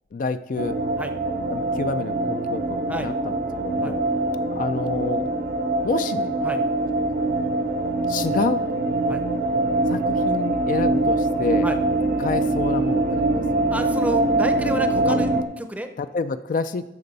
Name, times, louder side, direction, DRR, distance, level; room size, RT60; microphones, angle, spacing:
voice 1, 0.1-0.7 1.5-3.3 3.6-4.0 4.5-5.2 5.8-6.3 8.1-8.6 9.9-11.7 12.2-13.4 15.0-15.2 16.0-16.8, left 4 dB, 50° left, 11 dB, 0.4 m, -28 dB
sound 1, 0.6-15.4, right 2 dB, 60° right, 0.7 m, -23 dB
voice 2, 13.7-15.9, right 1 dB, 10° right, 7 dB, 0.6 m, -30 dB
12.0 x 6.8 x 4.0 m, 0.90 s
head